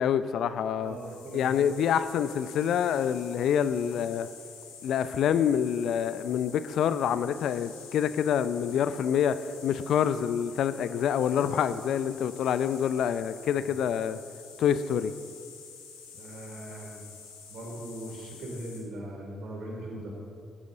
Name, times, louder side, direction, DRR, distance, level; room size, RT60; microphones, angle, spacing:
voice 1, 0.0-1.0 1.3-4.3 4.8-9.3 9.6-14.2 14.6-15.1, left 8 dB, 65° left, 13 dB, 0.5 m, -26 dB
sound 1, 0.8-18.8, left 6 dB, 85° left, 1.9 m, -48 dB
voice 2, 0.8-1.7 13.5-13.7 16.2-17.0 17.5-20.1, right 1 dB, 65° right, -1 dB, 3.5 m, -40 dB
14.5 x 11.5 x 4.1 m, 2.3 s
hypercardioid pair, 45°, 0 cm